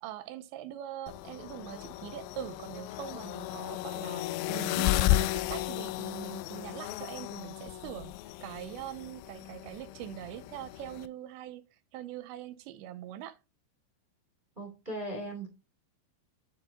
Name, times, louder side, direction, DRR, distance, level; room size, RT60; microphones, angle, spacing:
voice 1, 0.0-8.1 8.4-11.7 11.9-13.4, right 12 dB, 85° right, 2.6 m, -42 dB
sound 1, 1.1-11.1, left 16 dB, 85° left, 3.2 m, -34 dB
voice 2, 14.5-15.5, right 1 dB, 20° right, 1.5 m, -38 dB
11.5 x 4.5 x 3.9 m
omnidirectional pair, 5.8 m